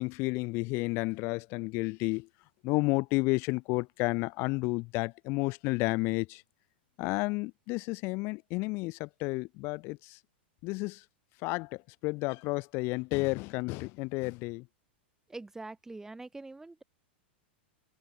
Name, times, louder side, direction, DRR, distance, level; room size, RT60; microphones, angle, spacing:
voice 1, 0.0-2.3 2.6-6.4 7.0-10.2 10.6-11.0 11.4-14.6, left 25 dB, 45° left, 0.4 m, -31 dB
voice 2, 15.3-16.8, right 2 dB, 10° right, 2.0 m, -44 dB
hypercardioid pair, 120°, 6 cm